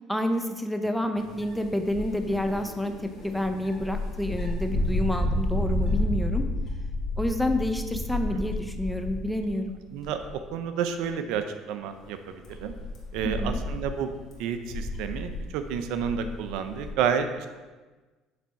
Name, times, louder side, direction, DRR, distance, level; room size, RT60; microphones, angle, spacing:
voice 1, 0.1-6.4 7.2-9.8 13.2-13.6, left 1 dB, ahead, 6 dB, 0.5 m, -29 dB
sound 1, 1.2-9.6 10.0-10.4 11.0-11.1 11.9-16.9, left 1 dB, 55° left, 1.5 m, -31 dB
voice 2, 9.9-12.2 12.6-12.7 13.1-14.1 14.4-17.5, right 7 dB, 75° right, 8 dB, 0.5 m, -30 dB
7.3 x 3.5 x 4.1 m, 1.3 s
supercardioid pair, 105°, 0 cm